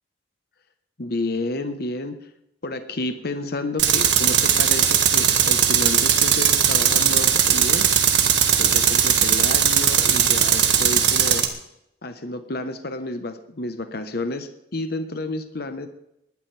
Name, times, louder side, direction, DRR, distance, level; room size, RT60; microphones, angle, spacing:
voice 1, 1.0-2.2 2.6-7.9 8.6-11.5 12.0-15.9, left 2 dB, 60° left, 8 dB, 1.2 m, -30 dB
Tools, 3.8-11.5, right 8 dB, 85° right, 1.8 m, -18 dB
20.0 x 12.0 x 3.4 m, 0.80 s
head